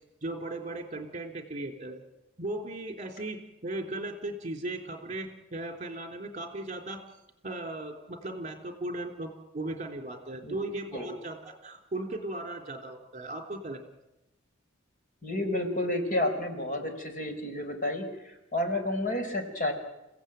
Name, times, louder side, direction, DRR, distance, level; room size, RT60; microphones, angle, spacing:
voice 1, 0.2-2.0 2.4-7.0 7.4-13.8, right 2 dB, 35° right, 4 dB, 3.4 m, -37 dB
voice 2, 15.2-19.7, left 1 dB, 40° left, 4 dB, 4.5 m, -31 dB
30.0 x 16.5 x 9.1 m, 0.95 s
head